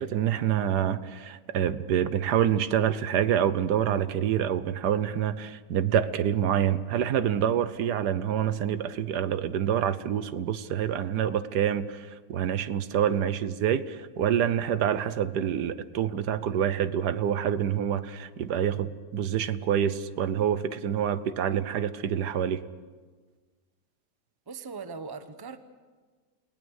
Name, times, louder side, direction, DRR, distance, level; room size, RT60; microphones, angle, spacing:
voice 1, 0.0-22.6, right 9 dB, 80° right, 13 dB, 1.5 m, -27 dB
voice 2, 24.5-25.6, right 5 dB, 20° right, 10 dB, 0.8 m, -40 dB
30.0 x 18.5 x 6.5 m, 1.4 s
omnidirectional pair, 1.7 m